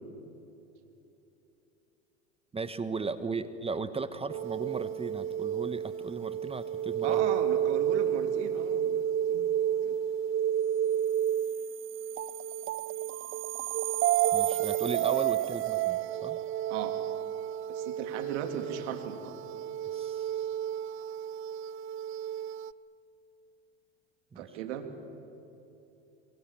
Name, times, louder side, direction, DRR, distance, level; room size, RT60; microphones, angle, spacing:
voice 1, 2.5-7.3 14.3-16.4 19.9-20.3 24.3-24.5, right 4 dB, 15° right, 12 dB, 1.2 m, -36 dB
sound 1, 4.3-22.7, right 11 dB, 35° right, 0.6 m, -31 dB
voice 2, 7.0-9.5 9.8-10.0 16.7-16.9 17.7-19.4 24.4-24.9, right 8 dB, 70° right, 7 dB, 3.0 m, -37 dB
26.0 x 24.0 x 7.4 m, 3.0 s
hypercardioid pair, 90°, 36 cm